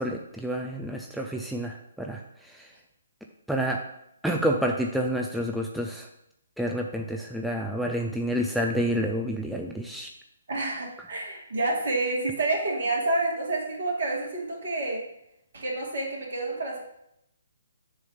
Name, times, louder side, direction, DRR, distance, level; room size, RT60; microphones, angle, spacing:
voice 1, 0.0-2.7 3.5-3.8 4.2-6.1 6.6-10.1, equal, ahead, 0 dB, 0.4 m, -29 dB
voice 2, 10.5-15.0 15.5-16.8, right 2 dB, 60° right, -2 dB, 2.3 m, -28 dB
7.1 x 3.2 x 5.9 m, 0.78 s
figure-of-eight pair, 135°, 0 cm